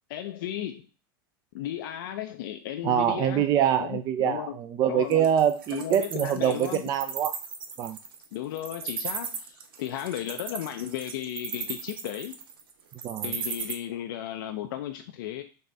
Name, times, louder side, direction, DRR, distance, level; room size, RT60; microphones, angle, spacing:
voice 1, 0.1-0.9 1.5-3.5 3.8-4.6 4.9-5.3 5.7-6.8 8.3-12.4 13.2-15.4, left 11 dB, 70° left, 6 dB, 0.4 m, -35 dB
voice 2, 2.8-7.3 7.8-8.0 13.0-13.3, right 9 dB, 35° right, 8 dB, 0.4 m, -25 dB
Wild animals, 5.1-13.7, right 6 dB, 80° right, 0.7 m, -36 dB
4.1 x 2.5 x 3.3 m, 0.33 s
hypercardioid pair, 100°, 12 cm